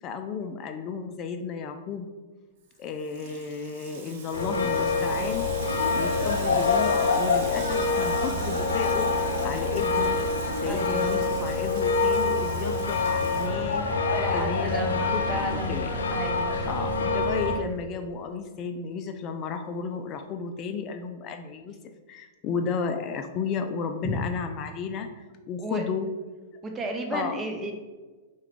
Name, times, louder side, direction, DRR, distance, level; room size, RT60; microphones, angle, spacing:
voice 1, 0.0-2.1 2.8-5.5 5.9-10.2 10.5-13.9 14.3-15.9 16.7-21.7 22.1-26.1 26.5-26.6 27.1-27.4, left 5 dB, 35° left, 7 dB, 0.3 m, -33 dB
Water tap faucet / Sink (filling or washing), 2.7-14.1, right 5 dB, 55° right, 0.8 m, -44 dB
sound 1, 4.3-17.6, left 3 dB, 85° left, 0.6 m, -26 dB
voice 2, 10.7-11.4 14.2-16.8 24.0-24.2 25.6-25.8 26.6-27.7, right 1 dB, 20° right, 3 dB, 0.7 m, -33 dB
4.6 x 2.3 x 3.6 m, 1.3 s
hypercardioid pair, 115°, 0 cm